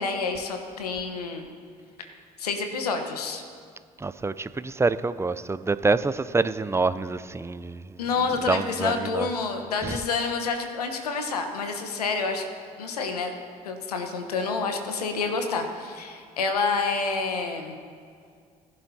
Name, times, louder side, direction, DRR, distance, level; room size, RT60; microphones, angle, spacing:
voice 1, 0.0-1.5 2.0-2.1 2.4-3.4 8.0-12.4 12.8-13.3 13.6-17.7, left 4 dB, 85° left, 1.1 m, -28 dB
voice 2, 4.0-7.8 8.5-9.3 9.8-10.0, right 3 dB, 15° right, 0.5 m, -26 dB
20.5 x 11.0 x 2.8 m
hypercardioid pair, 55°, 19 cm